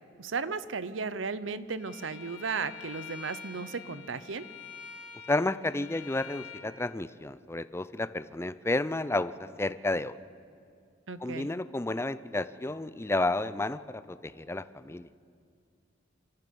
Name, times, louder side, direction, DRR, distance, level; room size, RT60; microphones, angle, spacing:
voice 1, 0.2-4.5 11.1-11.5, right 4 dB, 85° right, 15 dB, 0.8 m, -35 dB
Bowed string instrument, 1.8-6.7, left 7 dB, 40° left, 3.4 m, -46 dB
voice 2, 5.3-10.2 11.2-15.1, left 2 dB, 15° left, 15 dB, 0.5 m, -31 dB
26.5 x 14.0 x 7.0 m, 2.3 s
head